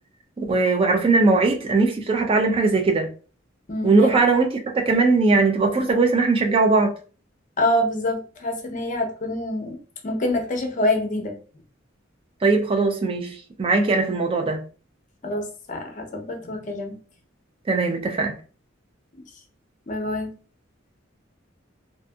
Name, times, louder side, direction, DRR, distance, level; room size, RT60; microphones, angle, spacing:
voice 1, 0.4-3.1 3.8-6.9 12.4-14.6 17.7-18.3, right 3 dB, 30° right, 0.3 m, -20 dB
voice 2, 3.7-4.2 7.6-9.8 10.0-11.3 15.2-15.4 15.7-17.0 19.9-20.3, left 1 dB, 40° left, 0.6 m, -26 dB
2.6 x 2.6 x 2.2 m
head